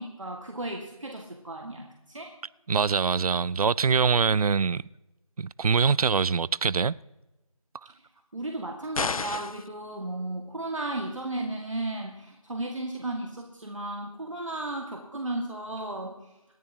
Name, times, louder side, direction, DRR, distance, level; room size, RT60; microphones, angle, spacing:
voice 1, 0.0-2.3 8.3-16.2, right 2 dB, 60° right, 1.9 m, -34 dB
voice 2, 2.7-4.8 5.4-7.0, right 5 dB, 85° right, 0.4 m, -24 dB
sound 1, 8.9-9.7, left 5 dB, 70° left, 0.4 m, -30 dB
27.0 x 11.0 x 2.9 m
figure-of-eight pair, 180°, 18 cm